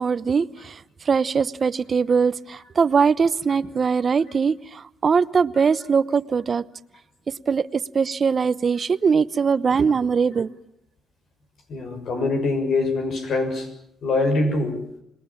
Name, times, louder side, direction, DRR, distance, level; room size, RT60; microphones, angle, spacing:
voice 1, 0.0-6.6 7.3-10.5, right 5 dB, 40° right, 0.9 m, -21 dB
voice 2, 11.7-13.7 14.0-14.8, left 3 dB, 65° left, 6.7 m, -23 dB
26.5 x 21.0 x 7.3 m
cardioid pair, 90°, 0 cm